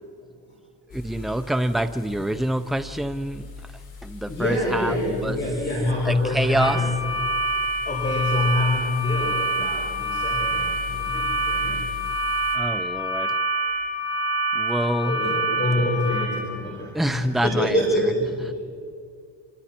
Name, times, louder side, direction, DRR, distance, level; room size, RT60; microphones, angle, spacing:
sound 1, 0.9-12.6, left 5 dB, 55° left, 4.2 m, -40 dB
voice 1, 0.9-3.4 4.0-4.9 5.2-5.4 6.1-6.8 12.5-13.3 14.5-15.2 16.9-17.8, right 1 dB, ahead, 9 dB, 0.5 m, -26 dB
voice 2, 4.3-7.0 7.9-11.9 15.0-18.5, left 1 dB, 25° left, -5 dB, 5.5 m, -26 dB
sound 2, 6.6-16.3, right 1 dB, 30° right, 6.2 m, -26 dB
26.5 x 26.0 x 4.4 m, 2.3 s
cardioid pair, 145°, 43 cm